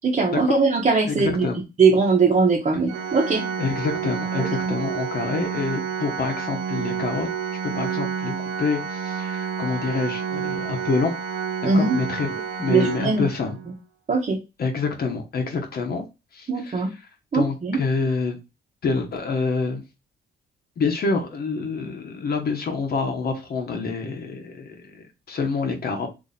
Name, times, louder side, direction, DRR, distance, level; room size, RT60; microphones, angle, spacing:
voice 1, 0.0-1.5 1.8-3.4 4.4-4.7 11.6-12.0 12.7-13.3 14.1-14.4 16.5-16.9 17.3-17.8, right 4 dB, 35° right, -1 dB, 0.9 m, -20 dB
voice 2, 1.0-1.6 2.7-2.8 3.6-7.3 7.6-11.2 11.6-12.3 12.6-13.6 14.6-16.1 16.3-16.8 17.3-18.4 18.8-19.8 20.8-26.1, left 4 dB, 50° left, 3 dB, 0.9 m, -27 dB
Organ, 2.9-13.7, right 7 dB, 75° right, 0.7 m, -29 dB
2.7 x 2.6 x 4.0 m, 0.26 s
cardioid pair, 90°, 20 cm